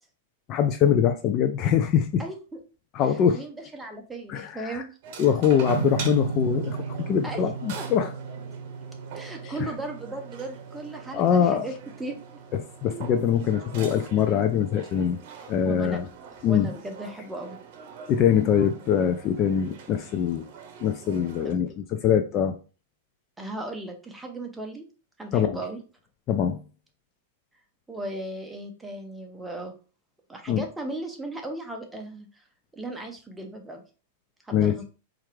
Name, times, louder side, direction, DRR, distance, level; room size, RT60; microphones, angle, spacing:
voice 1, 0.5-2.2 2.9-3.4 4.3-4.8 5.2-8.1 9.4-9.7 11.1-11.7 12.8-15.2 15.5-16.1 16.4-16.7 18.1-20.5 20.8-22.6 25.3-25.6 26.3-26.6 30.5-30.6 34.5-34.7, left 8 dB, 35° left, 8 dB, 0.3 m, -23 dB
voice 2, 2.2-2.6 3.3-4.9 7.2-7.5 7.8-7.9 9.1-11.7 12.0-12.2 15.6-16.0 16.4-17.6 21.4-21.6 23.4-24.8 25.2-25.8 27.9-29.7 30.3-32.4 32.7-33.8 34.4-34.8, right 2 dB, 5° right, 2 dB, 0.7 m, -36 dB
sound 1, 5.0-21.5, right 6 dB, 50° right, 0.8 m, -44 dB
sound 2, 5.7-12.9, right 5 dB, 80° right, 0.4 m, -36 dB
4.3 x 2.5 x 3.1 m, 0.35 s
supercardioid pair, 145°, 0 cm